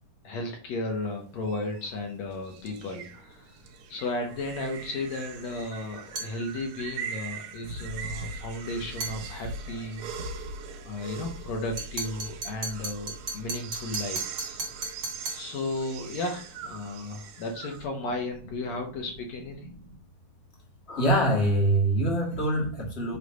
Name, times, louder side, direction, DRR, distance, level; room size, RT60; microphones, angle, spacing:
voice 1, 0.2-3.6 3.9-10.1 10.9-14.7 15.3-19.7, left 2 dB, 65° left, 2 dB, 2.0 m, -34 dB
sound 1, 0.9-17.9, right 4 dB, 80° right, 2.5 m, -41 dB
sound 2, 6.1-6.4 9.0-9.2 11.8-15.5, right 3 dB, 40° right, 2.6 m, -35 dB
voice 2, 20.9-23.2, right 1 dB, 25° left, -1 dB, 1.5 m, -24 dB
8.3 x 3.2 x 5.3 m, 0.41 s
omnidirectional pair, 3.8 m